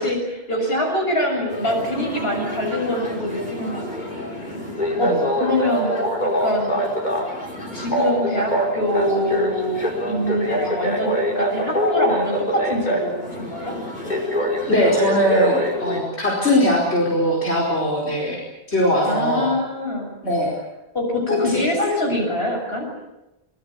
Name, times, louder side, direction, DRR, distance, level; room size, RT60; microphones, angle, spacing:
voice 1, 0.0-4.7 5.0-6.0 6.2-6.8 7.7-13.7 19.1-20.1 20.9-22.9, left 1 dB, 70° left, 1 dB, 7.3 m, -24 dB
sound 1, 1.5-16.0, equal, 45° left, 5.3 m, -25 dB
voice 2, 14.7-18.4 18.7-19.5 20.2-20.5 21.4-21.6, equal, 85° left, -3 dB, 5.2 m, -20 dB
24.5 x 21.0 x 8.4 m, 0.90 s
omnidirectional pair, 1.1 m